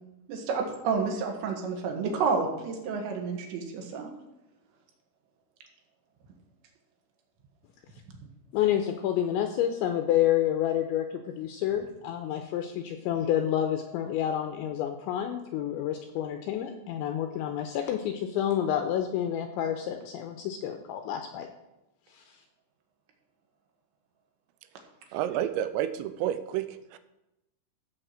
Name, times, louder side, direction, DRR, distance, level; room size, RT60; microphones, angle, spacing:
voice 1, 0.3-4.1, right 5 dB, 65° right, 2 dB, 3.6 m, -30 dB
voice 2, 8.5-21.5 22.1-22.4, left 10 dB, 85° left, 6 dB, 2.7 m, -29 dB
voice 3, 25.1-27.0, right 11 dB, 90° right, 11 dB, 3.3 m, -30 dB
14.5 x 4.9 x 7.5 m, 0.92 s
omnidirectional pair, 6.0 m